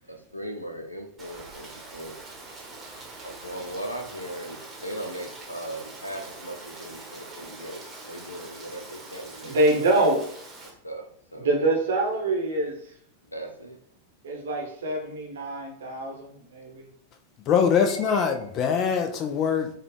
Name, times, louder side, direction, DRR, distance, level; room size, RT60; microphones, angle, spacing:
voice 1, 0.0-2.2 3.2-9.9 10.8-11.5 13.2-13.8 18.0-18.1, right 1 dB, 85° left, 4 dB, 0.5 m, -38 dB
Rain, 1.2-10.7, right 3 dB, 20° right, 1.0 m, -43 dB
voice 2, 9.4-10.2 11.4-12.9 14.2-16.8, right 2 dB, 65° right, 1 dB, 0.8 m, -25 dB
voice 3, 17.5-19.7, left 7 dB, 35° left, 6 dB, 0.4 m, -23 dB
3.7 x 2.3 x 3.3 m, 0.64 s
figure-of-eight pair, 90°, 0 cm